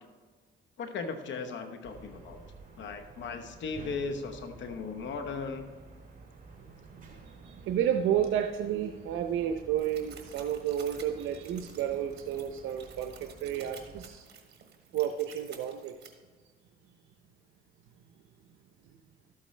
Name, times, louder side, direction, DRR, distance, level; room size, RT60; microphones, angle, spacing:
voice 1, 0.8-2.4 2.8-5.7, left 4 dB, 70° left, 7 dB, 1.0 m, -37 dB
sound 1, 1.8-14.1, right 4 dB, 40° right, 2.1 m, -51 dB
voice 2, 7.0-14.2 14.9-15.9, right 10 dB, 85° right, 5 dB, 0.6 m, -31 dB
sound 2, 9.7-16.1, right 7 dB, 60° right, 1.5 m, -52 dB
12.5 x 8.4 x 3.2 m, 1.5 s
cardioid pair, 90°, 20 cm